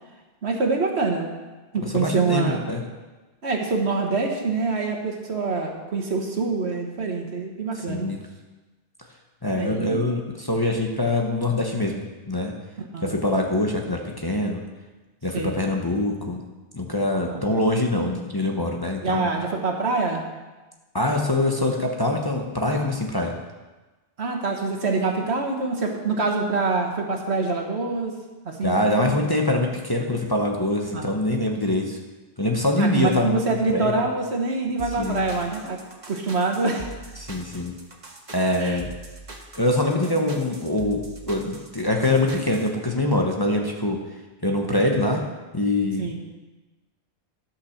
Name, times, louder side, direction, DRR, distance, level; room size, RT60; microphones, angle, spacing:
voice 1, 0.4-1.3 1.7-2.6 3.4-8.1 9.6-10.0 12.9-13.2 15.3-15.6 17.2-17.4 19.0-20.2 24.2-28.1 28.4-29.3 30.9-31.2 32.8-35.8 36.1-36.9 38.6-38.8 40.2-40.3 46.0-46.1, right 3 dB, 75° right, 2 dB, 1.6 m, -25 dB
voice 2, 1.9-2.8 7.7-8.2 9.4-12.5 13.0-14.6 15.2-16.4 16.7-19.3 20.9-23.4 28.6-32.0 32.4-33.9 35.0-35.2 37.2-37.7 38.3-38.9 39.5-44.0 44.4-45.3 45.5-46.1, left 1 dB, 20° left, 0 dB, 1.0 m, -24 dB
sound 1, 34.8-42.7, right 2 dB, 40° right, 1.3 m, -42 dB
11.5 x 5.9 x 6.5 m, 1.2 s
omnidirectional pair, 1.1 m